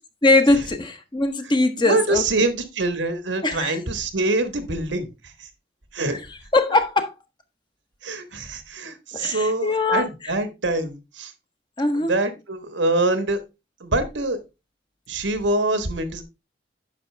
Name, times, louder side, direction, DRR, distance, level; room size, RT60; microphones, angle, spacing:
voice 1, 0.2-2.2 3.4-3.8 6.5-7.1 9.1-10.3 11.8-12.1, left 2 dB, 25° left, 0.9 m, -21 dB
voice 2, 1.8-5.5 5.9-6.2 8.0-11.3 11.9-13.4 13.8-14.4 15.1-16.2, right 2 dB, 85° right, 1.4 m, -25 dB
9.7 x 6.1 x 3.3 m
head